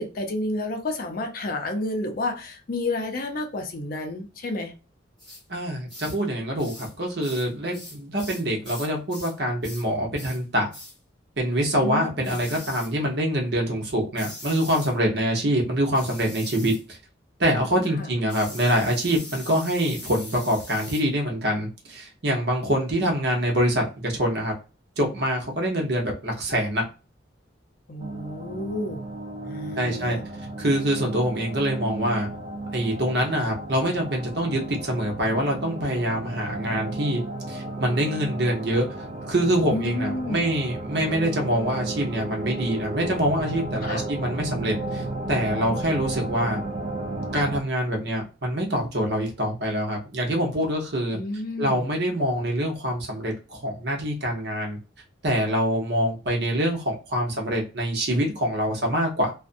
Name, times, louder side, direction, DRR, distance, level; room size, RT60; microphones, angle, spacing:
voice 1, 0.0-4.7 7.7-7.8 11.8-12.4 18.0-18.1 27.9-29.0 29.4-30.2 39.7-40.5 43.9-44.1 51.1-51.9, left 2 dB, 50° left, 0.5 m, -30 dB
sound 1, 5.2-5.4 5.9-6.2 6.6-6.9 7.2-9.4 9.6-9.9 10.1-10.4 10.7-11.0 12.2-12.9 14.1-14.9 15.9-16.8 18.3-21.1, left 1 dB, ahead, 1.3 m, -41 dB
voice 2, 5.5-10.7 11.4-17.0 17.4-24.5 25.0-26.9 29.8-30.2 30.6-32.3 32.7-37.2 37.5-38.9 39.3-46.6 47.3-51.2 51.6-54.8 55.2-59.3, equal, 60° right, 0.9 m, -25 dB
sound 2, 28.0-47.6, right 2 dB, 35° right, 0.4 m, -34 dB
2.5 x 2.1 x 2.5 m
head